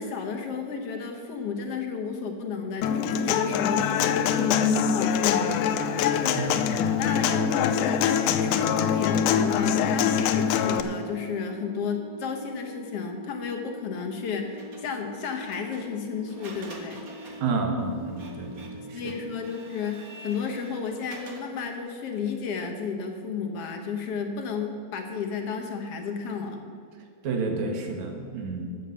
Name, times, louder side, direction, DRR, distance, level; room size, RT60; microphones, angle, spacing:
voice 1, 0.0-6.5 6.9-17.0 18.9-26.6, left 5 dB, 60° left, 4 dB, 1.7 m, -32 dB
Human voice / Acoustic guitar, 2.8-10.8, left 8 dB, 85° left, 2.1 m, -24 dB
Organ, 9.3-20.2, equal, 40° left, 2.7 m, -44 dB
Printer, 14.6-21.8, right 2 dB, 40° right, 1.2 m, -47 dB
voice 2, 17.4-19.0 27.2-28.7, right 4 dB, 65° right, 3 dB, 2.7 m, -30 dB
13.5 x 7.1 x 6.9 m, 2.3 s
omnidirectional pair, 3.6 m